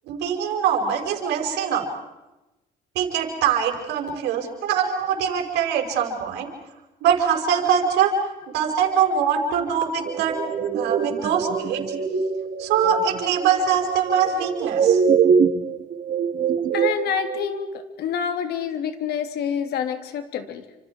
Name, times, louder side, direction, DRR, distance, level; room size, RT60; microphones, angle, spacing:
voice 1, 0.1-1.9 3.0-6.5 7.0-10.4 10.7-11.8 12.6-15.0, right 7 dB, 85° right, 2 dB, 5.2 m, -23 dB
sound 1, 10.0-17.5, right 6 dB, 50° right, 2.3 m, -23 dB
voice 2, 16.7-17.7 18.0-20.6, left 8 dB, 70° left, 7 dB, 3.2 m, -27 dB
29.5 x 26.5 x 4.8 m, 1.0 s
cardioid pair, 110°, 17 cm